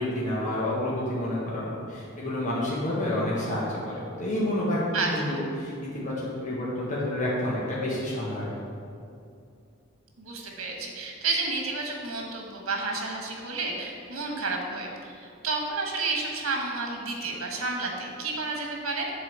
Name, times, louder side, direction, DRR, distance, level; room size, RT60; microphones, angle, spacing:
voice 1, 0.0-4.8 5.1-8.5, left 1 dB, 40° left, -7 dB, 1.5 m, -29 dB
voice 2, 4.9-5.4 10.2-19.1, right 3 dB, 85° right, 1 dB, 1.5 m, -31 dB
7.9 x 4.1 x 6.7 m, 2.5 s
head